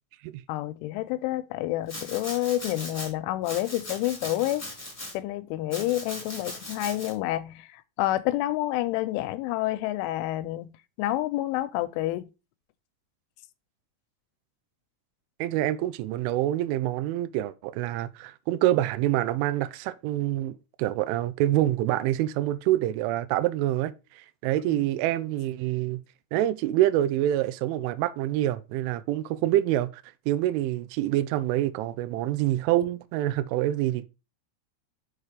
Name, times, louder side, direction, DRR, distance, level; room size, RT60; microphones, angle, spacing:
voice 1, 0.5-4.7 5.1-10.7 11.0-12.3 24.7-24.9, left 15 dB, 85° left, 3.0 m, -29 dB
Domestic sounds home sounds, 1.9-3.1 3.4-5.1 5.7-7.1, left 1 dB, 5° left, 1.6 m, -39 dB
voice 2, 15.4-26.0 26.3-34.1, right 14 dB, 85° right, 3.0 m, -26 dB
6.6 x 6.2 x 5.0 m
omnidirectional pair, 5.6 m